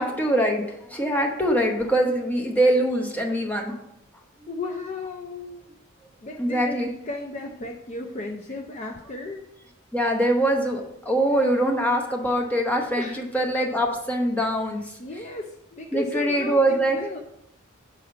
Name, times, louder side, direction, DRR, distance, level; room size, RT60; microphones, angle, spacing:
voice 1, 0.0-3.8 4.4-4.5 6.4-6.9 9.9-14.9 15.9-17.0, right 1 dB, 5° left, 0 dB, 0.9 m, -23 dB
voice 2, 4.5-5.7 6.2-6.8 7.1-9.4 12.9-13.2 15.0-17.2, left 2 dB, 35° left, 2 dB, 0.5 m, -34 dB
6.8 x 3.5 x 5.6 m, 0.78 s
head